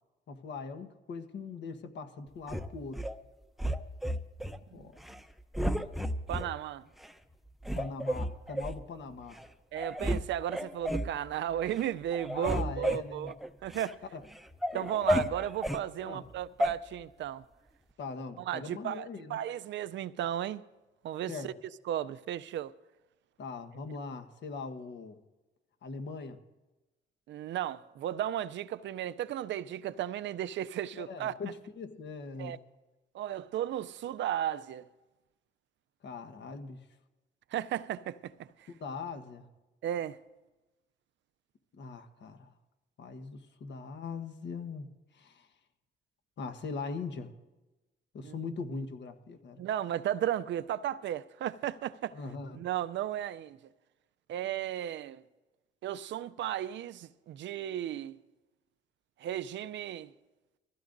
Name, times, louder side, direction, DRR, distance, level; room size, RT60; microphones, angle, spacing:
voice 1, 0.3-3.1 4.7-5.0 7.7-9.4 12.3-13.3 14.1-14.2 14.7-14.9 16.0-16.2 18.0-19.4 21.3-21.5 23.4-25.2 25.8-26.4 30.9-32.5 36.0-36.8 38.7-39.5 41.7-42.5 43.0-45.5 46.4-47.3 48.1-49.6 52.1-52.6, left 4 dB, 65° left, 1.3 m, -41 dB
sound 1, 2.5-3.1 3.6-4.6 5.0-5.2 5.5-6.5 7.0-7.1 7.6-8.8 9.4-9.5 9.8-10.2 10.5-11.1 11.6-11.9 12.1-13.9 14.3-15.8 16.6-16.7, equal, ahead, 0.7 m, -32 dB
voice 2, 6.3-6.8 9.7-13.3 13.6-14.0 14.7-17.4 18.4-20.6 21.0-21.5 21.9-22.7 27.3-31.3 32.4-32.6 33.1-34.9 37.5-38.7 39.8-40.2 48.2-48.3 49.6-52.2 52.5-53.6 54.3-55.2 55.8-58.1 59.2-60.1, right 11 dB, 70° right, 0.5 m, -35 dB
22.5 x 15.5 x 2.6 m
cardioid pair, 90°, 20 cm